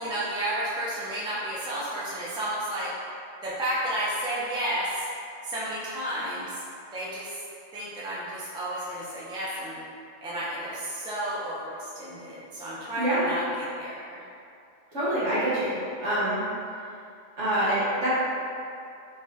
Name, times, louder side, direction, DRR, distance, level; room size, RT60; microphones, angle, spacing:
voice 1, 0.0-2.9 3.4-5.1 5.4-6.6 6.9-7.3 7.7-9.8 10.2-14.2, right 1 dB, 5° right, -8 dB, 0.4 m, -32 dB
voice 2, 14.9-16.4 17.4-18.1, right 1 dB, 70° right, -10 dB, 1.5 m, -26 dB
3.5 x 3.1 x 2.8 m, 2.5 s
omnidirectional pair, 1.3 m